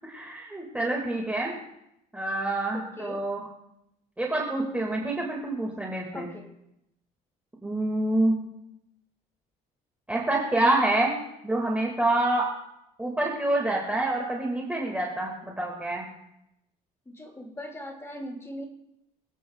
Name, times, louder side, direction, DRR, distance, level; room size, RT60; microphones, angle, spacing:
voice 1, 0.0-1.5 2.1-3.5 4.2-6.3 7.6-8.4 10.1-11.2 11.4-12.5 13.0-16.1, right 2 dB, 10° right, -2 dB, 2.1 m, -27 dB
voice 2, 2.7-3.2 6.1-6.5 17.1-18.7, equal, 15° left, 2 dB, 2.3 m, -40 dB
23.5 x 8.3 x 2.4 m, 0.82 s
cardioid pair, 110°, 17 cm